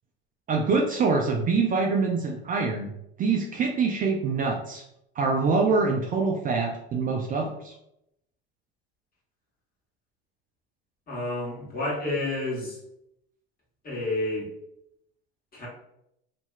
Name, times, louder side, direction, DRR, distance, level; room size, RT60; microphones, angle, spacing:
voice 1, 0.5-2.9 3.2-4.8 5.2-7.7, right 4 dB, 30° right, 1 dB, 0.4 m, -25 dB
voice 2, 11.1-12.8 13.8-14.5 15.5-15.7, left 2 dB, 30° left, -4 dB, 1.4 m, -30 dB
2.9 x 2.7 x 2.3 m, 0.80 s
hypercardioid pair, 75°, 29 cm